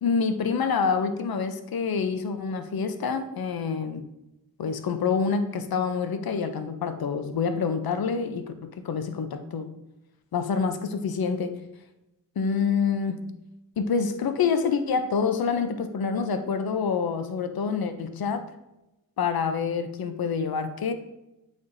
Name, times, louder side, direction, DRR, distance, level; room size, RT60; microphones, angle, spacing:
voice 1, 0.0-4.1 4.6-9.7 10.3-11.5 12.4-13.2 13.8-18.5 19.2-20.9, left 5 dB, 85° left, 9 dB, 0.6 m, -27 dB
8.6 x 4.2 x 2.6 m, 0.91 s
wide cardioid pair, 65°, 35 cm